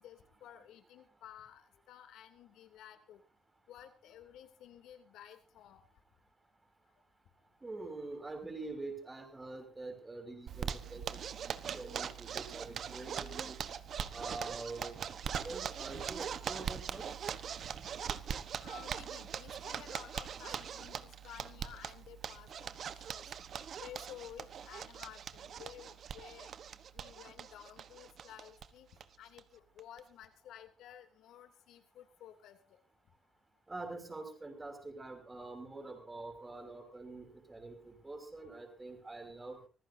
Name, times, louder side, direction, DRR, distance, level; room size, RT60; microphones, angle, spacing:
voice 1, 0.0-3.2 3.7-5.8 18.6-26.6 26.9-32.8, left 10 dB, 85° left, 7 dB, 3.0 m, -54 dB
voice 2, 7.6-13.6 14.1-15.0 15.3-17.0 33.7-39.6, right 2 dB, 20° right, 6 dB, 6.0 m, -45 dB
Zipper (clothing), 10.5-28.7 29.0-29.1 29.4-29.5 29.8-30.2, right 8 dB, 60° right, 1.2 m, -41 dB
25.5 x 15.0 x 2.8 m, 0.34 s
cardioid pair, 90°, 0 cm